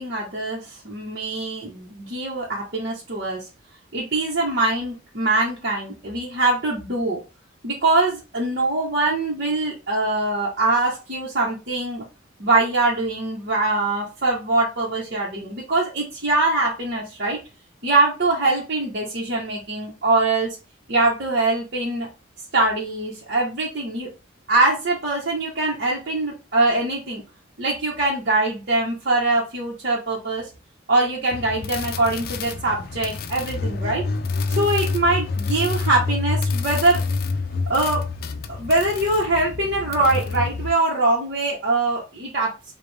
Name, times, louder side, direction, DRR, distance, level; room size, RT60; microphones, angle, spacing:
voice 1, 0.0-3.5 3.9-7.2 7.6-12.0 12.4-17.4 17.8-20.6 20.9-22.1 22.5-24.1 24.5-27.2 27.6-30.5 30.9-34.0 34.5-37.0 37.7-38.0 38.5-42.5, right 2 dB, 55° right, -6 dB, 1.2 m, -23 dB
sound 1, 31.3-40.7, left 4 dB, 50° left, 0.4 m, -27 dB
5.0 x 2.5 x 3.3 m, 0.30 s
head